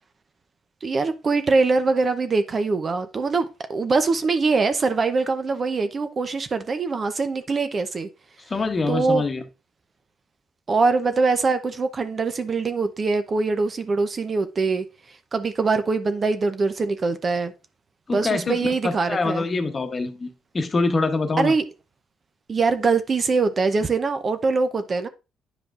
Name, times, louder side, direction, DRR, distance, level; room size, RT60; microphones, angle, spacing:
voice 1, 0.8-8.1 8.9-9.2 10.7-14.8 15.3-17.5 18.1-19.5 21.4-21.6 22.5-25.1, right 4 dB, 40° right, 0.6 m, -23 dB
voice 2, 8.5-9.4 18.1-21.5, left 3 dB, 35° left, 1.0 m, -25 dB
9.7 x 5.0 x 2.5 m
cardioid pair, 90°, 0 cm